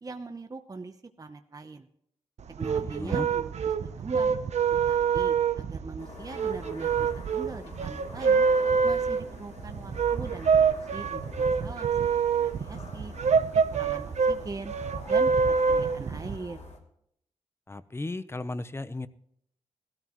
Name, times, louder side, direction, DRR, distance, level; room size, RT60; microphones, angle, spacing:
voice 1, 0.0-1.9 2.6-3.5 3.8-4.4 4.8-8.5 8.8-12.0 12.4-13.1 13.7-14.7 15.1-16.6, right 3 dB, 30° right, 7 dB, 0.8 m, -41 dB
sound 1, 2.4-16.4, right 6 dB, 70° right, 0.7 m, -26 dB
voice 2, 2.8-3.3 17.7-19.1, left 2 dB, 20° left, 14 dB, 0.7 m, -35 dB
sound 2, 6.0-16.8, left 2 dB, 70° left, 2.7 m, -45 dB
17.0 x 13.0 x 3.0 m, 0.72 s
wide cardioid pair, 90°, 12 cm